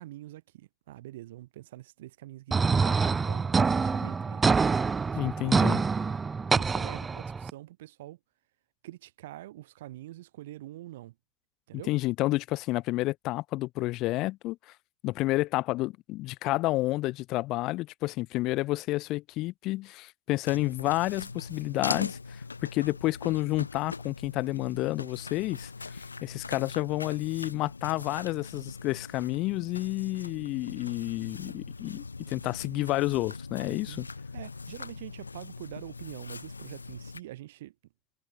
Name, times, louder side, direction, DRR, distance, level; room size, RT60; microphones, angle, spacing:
voice 1, 0.0-5.6 6.5-8.2 8.8-11.1 11.7-11.9 33.7-34.0 34.3-37.7, right 15 dB, 70° right, 3.3 m, -45 dB
sound 1, 2.5-7.5, right 5 dB, 20° right, 0.4 m, -26 dB
voice 2, 5.2-5.8 11.9-14.6 15.0-34.1, left 19 dB, 55° left, 2.3 m, -30 dB
sound 2, 20.4-37.2, left 4 dB, 85° left, 0.9 m, -41 dB
figure-of-eight pair, 70°, 0 cm